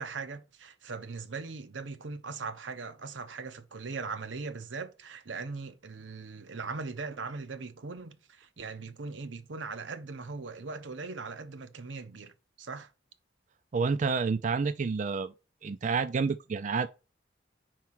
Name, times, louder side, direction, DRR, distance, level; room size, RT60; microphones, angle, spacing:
voice 1, 0.0-12.3 12.6-12.9, right 4 dB, 90° right, 0.8 m, -40 dB
voice 2, 13.7-15.3 15.6-16.9, right 5 dB, 45° right, 0.4 m, -29 dB
4.7 x 4.6 x 5.7 m
head